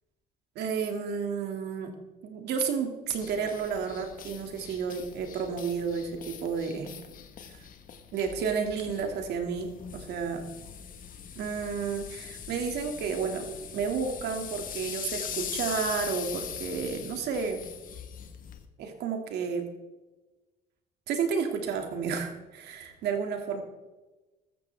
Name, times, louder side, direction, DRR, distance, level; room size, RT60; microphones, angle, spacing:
voice 1, 0.6-1.9 2.2-6.9 7.5-7.6 8.1-10.4 11.4-13.5 13.7-17.6 18.8-19.7 21.1-23.6, right 6 dB, 75° right, 4 dB, 2.4 m, -31 dB
sound 1, 3.1-18.6, left 8 dB, 55° left, 1.4 m, -41 dB
14.5 x 13.5 x 3.5 m, 1.1 s
cardioid pair, 110°, 17 cm